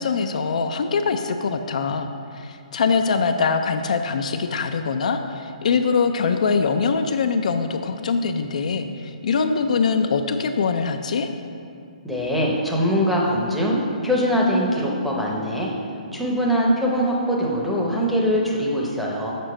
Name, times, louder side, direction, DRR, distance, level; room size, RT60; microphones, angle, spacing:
voice 1, 0.0-11.3, left 5 dB, 60° left, 7 dB, 0.4 m, -23 dB
voice 2, 12.0-15.7 16.1-19.3, equal, ahead, -4 dB, 0.7 m, -22 dB
6.7 x 4.4 x 6.2 m, 2.4 s
hypercardioid pair, 165°, 4 cm